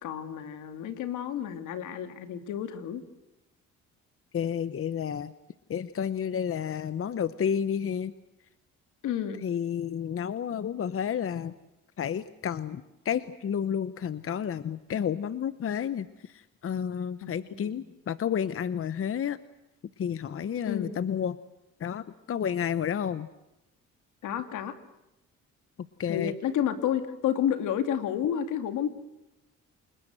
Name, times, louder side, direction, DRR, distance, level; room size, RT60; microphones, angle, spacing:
voice 1, 0.0-3.0 9.0-9.4 17.2-17.3 17.6-17.8 20.6-21.0 24.2-24.7 26.1-28.9, left 9 dB, 85° left, 8 dB, 2.4 m, -30 dB
voice 2, 4.3-5.3 5.7-8.1 9.4-11.5 12.0-19.4 20.0-21.4 21.8-23.3 25.8-26.3, left 8 dB, 45° left, 15 dB, 0.9 m, -31 dB
28.5 x 20.0 x 7.9 m, 0.93 s
cardioid pair, 90°, 30 cm